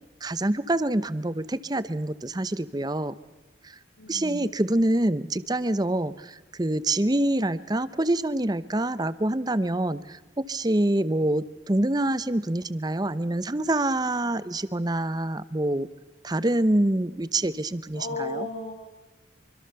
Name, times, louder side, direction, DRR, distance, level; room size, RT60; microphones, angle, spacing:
voice 1, 0.2-3.2 3.6-3.7 4.1-10.2 10.5-15.9 16.2-18.5, right 1 dB, 20° right, 16 dB, 0.7 m, -26 dB
voice 2, 4.0-4.5 17.9-18.7, left 2 dB, 75° left, -3 dB, 4.9 m, -34 dB
26.0 x 24.5 x 6.9 m, 1.1 s
head